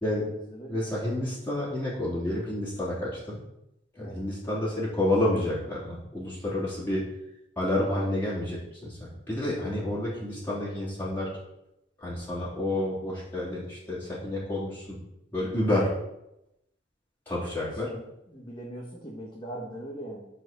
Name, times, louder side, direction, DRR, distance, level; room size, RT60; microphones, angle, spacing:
voice 1, 0.1-0.8 4.0-4.2 17.9-20.3, equal, 25° left, -3 dB, 1.6 m, -40 dB
voice 2, 0.7-3.4 4.0-7.0 7.6-11.3 12.0-15.0 15.3-15.9 17.3-17.9, left 1 dB, 10° left, -9 dB, 3.7 m, -29 dB
11.0 x 5.1 x 7.0 m, 0.84 s
head